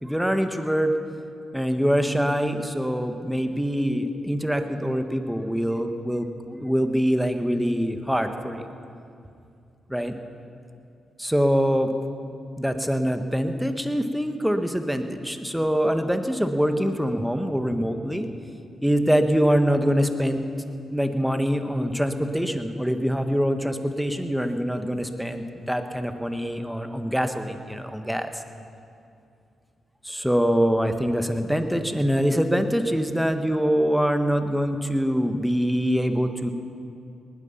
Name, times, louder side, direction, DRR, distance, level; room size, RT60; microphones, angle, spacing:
voice 1, 0.0-1.0 1.5-8.7 9.9-10.2 11.2-11.9 12.6-18.3 18.8-20.4 20.9-28.4 30.0-36.5, equal, 5° right, 7 dB, 1.6 m, -24 dB
19.5 x 13.0 x 5.7 m, 2.5 s
hypercardioid pair, 40°, 0 cm